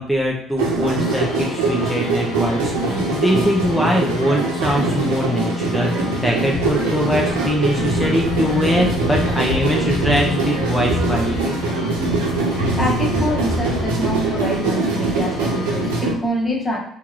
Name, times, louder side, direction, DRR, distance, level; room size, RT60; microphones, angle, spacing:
voice 1, 0.0-11.6, equal, ahead, -2 dB, 0.7 m, -22 dB
sound 1, 0.6-16.1, right 3 dB, 90° right, 0.7 m, -23 dB
sound 2, 1.0-16.0, left 4 dB, 65° left, 0.8 m, -30 dB
voice 2, 12.8-16.8, left 1 dB, 25° left, 0 dB, 1.1 m, -25 dB
4.5 x 2.5 x 2.9 m, 0.73 s
hypercardioid pair, 60°, 0 cm